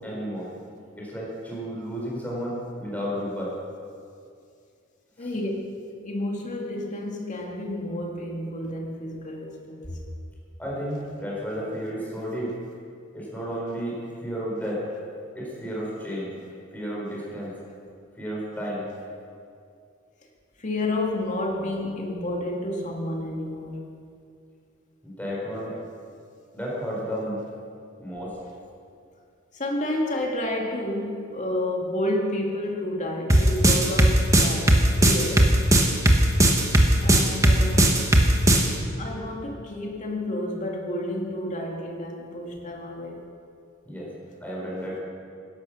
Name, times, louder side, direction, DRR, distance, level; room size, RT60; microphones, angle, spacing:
voice 1, 0.0-0.5 1.0-3.5 5.2-5.3 10.6-12.5 13.1-14.8 15.3-16.3 16.7-17.5 18.2-18.9 25.0-25.7 26.5-27.4 28.0-28.3 43.8-44.1 44.4-45.0, equal, 10° left, 4.7 m, -32 dB
voice 2, 5.2-5.5 6.0-9.9 20.6-23.8 29.5-35.5 37.0-38.0 39.0-43.2, left 1 dB, 35° left, 2.2 m, -30 dB
sound 1, 33.3-38.7, right 1 dB, 15° right, 1.4 m, -17 dB
16.5 x 11.5 x 6.3 m
head